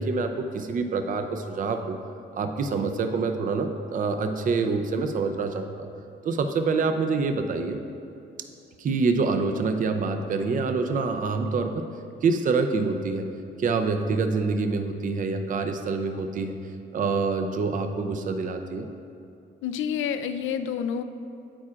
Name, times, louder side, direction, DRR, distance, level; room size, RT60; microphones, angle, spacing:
voice 1, 0.0-2.0 2.3-5.9 6.2-7.8 8.8-11.8 12.2-13.3 13.6-16.6 16.9-18.9, right 4 dB, 45° right, 6 dB, 0.5 m, -26 dB
voice 2, 19.6-21.0, left 8 dB, 80° left, 10 dB, 0.4 m, -28 dB
8.7 x 8.5 x 2.4 m, 2.6 s
cardioid pair, 90°, 20 cm